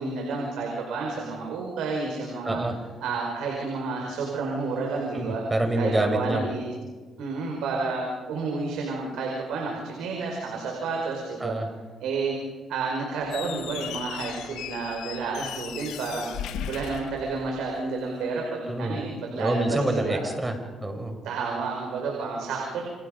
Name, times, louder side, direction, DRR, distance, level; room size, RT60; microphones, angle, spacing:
voice 1, 0.0-2.6 3.0-5.4 5.8-6.6 7.2-11.6 12.0-12.4 12.7-20.2 21.2-22.8, right 4 dB, 85° right, -1 dB, 5.2 m, -30 dB
voice 2, 2.4-2.8 5.1-6.5 11.4-11.7 18.7-19.0 19.4-21.2, right 1 dB, 15° right, 5 dB, 5.2 m, -27 dB
Squeak, 13.2-17.9, left 9 dB, 90° left, 1.6 m, -37 dB
29.5 x 26.5 x 5.3 m, 1.4 s
cardioid pair, 90°, 0 cm